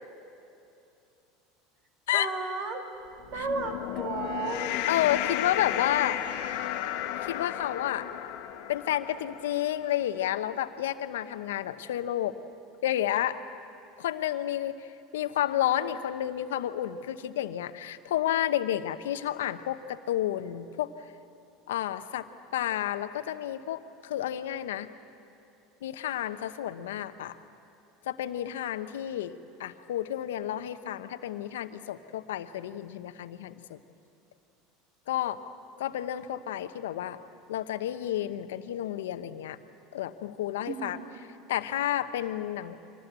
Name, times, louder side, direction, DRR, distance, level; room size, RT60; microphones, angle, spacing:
voice 1, 2.1-2.9 3.3-4.8 40.7-41.1, right 4 dB, 50° right, 5 dB, 2.5 m, -34 dB
sound 1, 3.2-9.8, left 12 dB, 70° left, 1.4 m, -33 dB
voice 2, 4.9-6.2 7.2-8.1 8.7-12.3 12.8-13.4 14.0-14.9 15.1-20.9 21.7-22.3 22.5-24.9 25.8-27.4 28.1-29.3 29.6-33.8 35.1-35.4 35.8-37.2 37.5-39.6 39.9-41.0 41.5-42.8, left 12 dB, 85° left, 11 dB, 0.9 m, -30 dB
24.5 x 18.5 x 8.2 m, 2.7 s
supercardioid pair, 100°, 0 cm